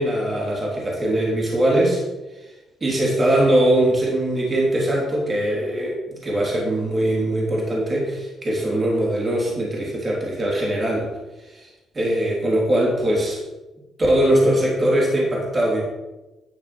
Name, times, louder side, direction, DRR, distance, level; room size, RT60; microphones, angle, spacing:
voice 1, 0.0-2.0 2.8-11.1 11.5-11.7 11.9-13.4 14.0-15.8, right 1 dB, 30° right, -3 dB, 3.5 m, -21 dB
10.5 x 5.9 x 6.1 m, 1.1 s
cardioid pair, 90°, 0 cm